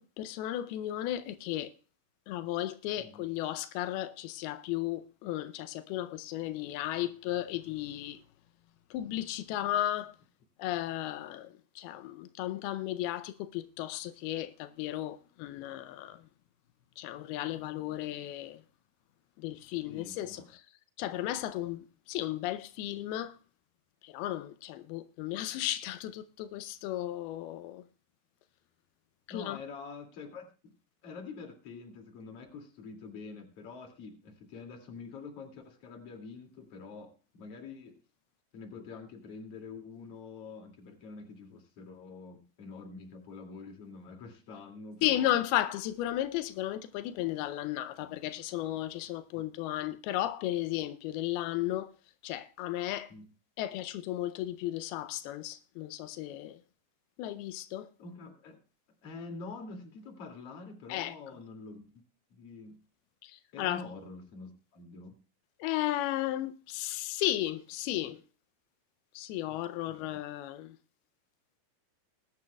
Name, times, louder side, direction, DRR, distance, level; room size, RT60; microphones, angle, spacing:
voice 1, 0.0-1.7 2.3-8.2 8.9-10.2 10.6-16.2 17.0-18.6 19.4-20.6 21.0-23.4 24.0-27.8 29.3-29.6 45.0-51.9 52.2-53.1 53.6-56.6 57.2-57.9 60.9-61.2 63.2-63.8 65.6-68.2 69.1-70.8, left 14 dB, 90° left, 2.6 m, -34 dB
voice 2, 19.9-20.4 29.3-30.7 31.0-38.0 38.5-45.4 53.1-53.3 58.0-58.6 59.0-61.9 62.3-62.8 63.5-65.1 67.9-68.1 69.5-69.6 69.9-70.2, left 4 dB, 45° left, 3.1 m, -46 dB
20.5 x 10.5 x 2.3 m
omnidirectional pair, 4.4 m